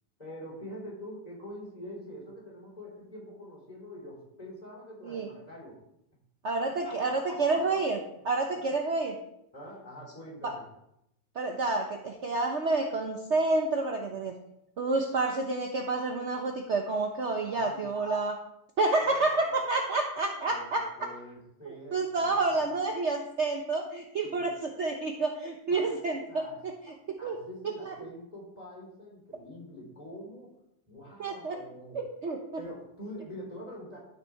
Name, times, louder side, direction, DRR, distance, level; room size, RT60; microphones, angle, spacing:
voice 1, 0.2-5.8 6.8-7.6 8.5-8.7 9.5-10.6 17.4-17.9 19.0-19.6 20.5-22.7 24.2-24.5 25.7-26.0 26.3-26.6 27.2-30.5 30.9-32.0 32.6-34.0, equal, 20° left, -3 dB, 3.5 m, -45 dB
voice 2, 6.4-8.0 8.2-9.2 10.4-10.5 11.3-14.3 14.8-18.4 18.8-21.1 21.6-27.4 27.6-27.9 31.2-31.6 31.9-32.6, right 3 dB, 50° right, 2 dB, 1.1 m, -29 dB
12.5 x 6.4 x 4.5 m, 0.81 s
omnidirectional pair, 1.9 m